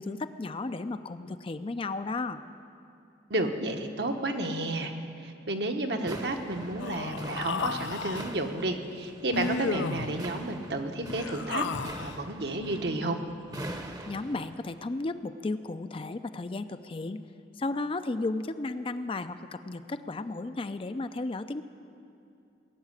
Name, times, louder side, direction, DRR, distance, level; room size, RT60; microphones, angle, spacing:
voice 1, 0.0-2.4 14.1-17.2 17.6-21.6, left 2 dB, 30° left, 10 dB, 0.4 m, -34 dB
voice 2, 3.3-4.9 5.2-11.7 12.0-13.2, right 2 dB, 65° right, 4 dB, 1.2 m, -31 dB
sound 1, 6.0-14.6, right 1 dB, 20° right, 0.8 m, -42 dB
Human voice, 6.8-8.3 9.3-10.2 11.1-12.2, left 5 dB, 80° left, 0.5 m, -33 dB
18.0 x 7.5 x 9.6 m, 2.7 s
head